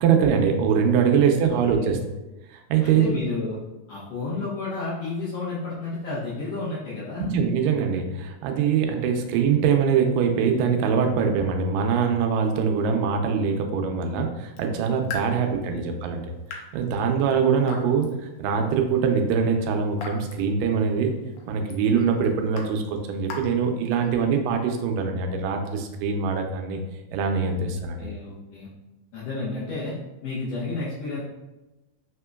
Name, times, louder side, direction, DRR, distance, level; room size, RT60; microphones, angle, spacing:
voice 1, 0.0-2.0 2.5-3.1 7.3-16.2 16.5-18.1 18.4-21.1 21.5-26.8 27.1-28.1, right 6 dB, 90° right, 4 dB, 2.2 m, -23 dB
voice 2, 1.1-1.9 2.8-3.6 3.9-7.3 15.1-15.8 27.6-27.7 28.0-28.7 29.1-29.9 30.2-31.2, left 3 dB, 70° left, -8 dB, 1.5 m, -32 dB
Raindrop / Drip, 14.4-24.3, left 4 dB, 90° left, 1.5 m, -43 dB
5.0 x 3.7 x 2.2 m, 1.0 s
omnidirectional pair, 3.8 m